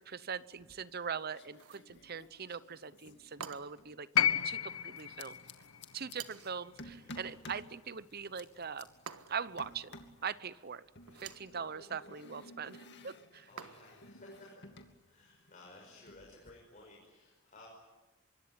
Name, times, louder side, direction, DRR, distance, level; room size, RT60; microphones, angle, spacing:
voice 1, 0.0-4.1 4.4-5.4 5.9-8.9 9.3-9.9 10.2-10.9 11.1-13.5, right 6 dB, 45° right, 17 dB, 0.8 m, -41 dB
sound 1, 0.5-1.1 1.3-4.0 5.0-6.2 6.8-7.7 8.1-8.8 9.6-10.2 11.0-15.0 15.2-16.5, left 2 dB, 50° left, 2.5 m, -53 dB
sound 2, 1.5-1.9 3.4-3.9 6.1-6.6 9.1-9.6 11.0-11.5 13.6-14.1, right 7 dB, 90° right, 1.5 m, -48 dB
sound 3, 4.1-8.3 9.5-9.6, left 9 dB, 75° left, 1.1 m, -34 dB
voice 2, 13.5-14.5 15.0-17.7, left 2 dB, 35° left, -1 dB, 6.1 m, -56 dB
25.5 x 23.5 x 9.7 m, 1.2 s
head